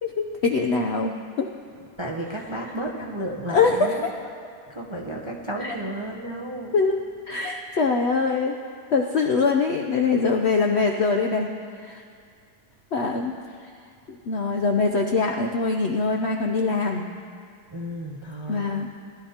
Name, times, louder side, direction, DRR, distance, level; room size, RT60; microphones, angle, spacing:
voice 1, 0.0-1.5 2.6-2.7 3.5-4.1 5.6-5.8 6.7-8.6 8.9-12.0 12.9-13.3 13.6-13.7 14.1-17.1 18.5-18.9, left 4 dB, 65° left, 2 dB, 0.6 m, -23 dB
voice 2, 2.0-4.1 4.7-6.7 17.7-18.7, right 1 dB, 30° right, -1 dB, 0.5 m, -32 dB
19.5 x 12.0 x 2.8 m, 2.2 s
omnidirectional pair, 1.8 m